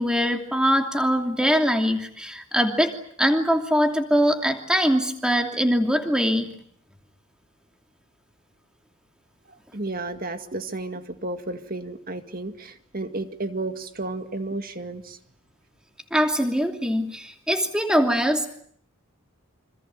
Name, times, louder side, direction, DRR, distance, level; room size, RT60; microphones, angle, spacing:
voice 1, 0.0-6.5 16.1-18.5, equal, 5° right, 4 dB, 2.8 m, -22 dB
voice 2, 9.5-15.2, right 2 dB, 40° right, 8 dB, 2.1 m, -32 dB
27.5 x 26.0 x 7.6 m, 0.63 s
head